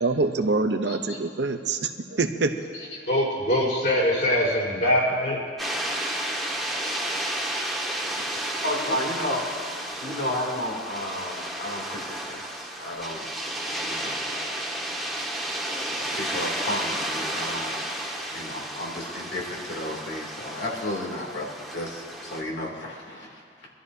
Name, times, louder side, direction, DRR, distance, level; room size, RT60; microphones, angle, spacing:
voice 1, 0.0-2.6, right 3 dB, 75° right, 7 dB, 0.8 m, -25 dB
voice 2, 3.1-5.4, left 1 dB, 60° left, -5 dB, 4.2 m, -23 dB
sound 1, 5.6-22.4, right 1 dB, ahead, 1.6 m, -32 dB
voice 3, 8.2-9.4 10.0-13.3 13.8-14.1 15.9-17.8 18.3-23.7, left 1 dB, 85° left, -3 dB, 2.8 m, -33 dB
24.0 x 12.5 x 2.8 m, 2.1 s
head